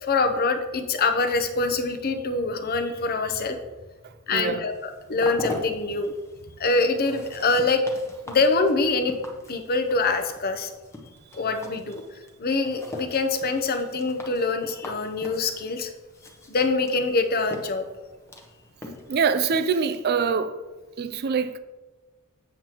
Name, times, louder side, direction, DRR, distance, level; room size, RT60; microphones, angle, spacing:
voice 1, 0.0-3.6 4.3-4.7 5.1-6.1 6.6-7.8 8.3-9.1 9.5-10.7 11.3-12.0 12.4-15.9 16.5-17.8, left 3 dB, 45° left, 0.7 m, -24 dB
voice 2, 4.3-4.7 19.1-20.6 21.0-21.6, right 5 dB, 45° right, 0.4 m, -24 dB
sound 1, 4.7-19.4, left 1 dB, 10° left, 0.8 m, -42 dB
7.7 x 7.2 x 2.9 m
head